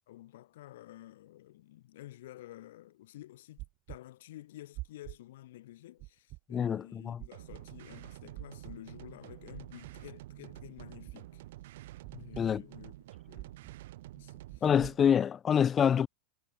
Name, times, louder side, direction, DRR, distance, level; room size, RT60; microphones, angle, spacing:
voice 1, 0.1-11.5 12.2-13.0 13.3-13.6 14.1-14.7, left 15 dB, 70° left, 2.0 m, -51 dB
sound 1, 3.6-4.0 4.7-5.2 6.0-6.4 7.2-7.6 8.3-8.8 9.5-9.9 10.8-11.2 12.0-12.4 13.3-13.7 14.5-14.9, right 22 dB, 35° right, 1.3 m, -44 dB
voice 2, 6.5-7.2 12.4-12.6 14.6-16.1, left 8 dB, 20° left, 0.4 m, -26 dB
sound 2, 7.3-15.0, right 16 dB, 65° right, 3.8 m, -49 dB
supercardioid pair, 165°, 0 cm